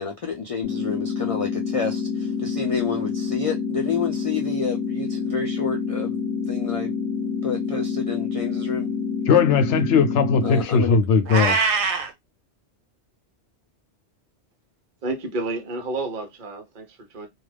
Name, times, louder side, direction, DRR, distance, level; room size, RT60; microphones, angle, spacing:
voice 1, 0.0-6.2 6.5-6.9 7.4-8.9 10.4-11.0, left 5 dB, 55° left, 0.4 m, -29 dB
sound 1, 0.6-10.6, left 5 dB, 20° left, 1.1 m, -27 dB
voice 2, 9.3-11.7, left 5 dB, 90° left, 0.9 m, -19 dB
Meow, 11.3-12.1, right 5 dB, 80° right, 0.9 m, -22 dB
voice 3, 15.0-17.3, right 2 dB, 50° right, 0.9 m, -30 dB
2.4 x 2.3 x 3.3 m
omnidirectional pair, 1.2 m